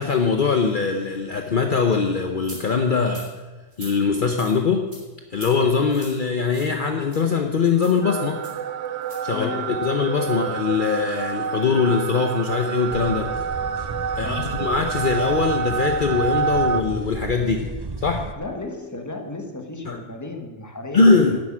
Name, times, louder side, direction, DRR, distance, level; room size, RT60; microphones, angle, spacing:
voice 1, 0.0-3.3 3.8-4.9 5.3-8.4 9.2-13.3 14.1-17.7 18.0-18.3 19.9-20.0 20.9-21.4, left 5 dB, 50° left, 4 dB, 1.0 m, -22 dB
sound 1, 2.4-2.6 3.1-3.3 3.7-3.9 4.4-4.5 4.9-5.0 5.3-5.5 5.9-6.2 6.5-6.7 7.1-7.2 7.8-8.0 8.4-8.6 9.0-9.2, right 1 dB, 60° right, 3.7 m, -41 dB
sound 2, 8.0-16.8, right 6 dB, 90° right, 1.0 m, -27 dB
voice 2, 9.3-9.8 14.2-14.6 18.4-21.4, left 2 dB, 15° left, 4 dB, 1.4 m, -34 dB
sound 3, 12.9-18.3, right 3 dB, 30° right, 0.5 m, -34 dB
11.0 x 8.0 x 8.6 m, 1.2 s
omnidirectional pair, 1.2 m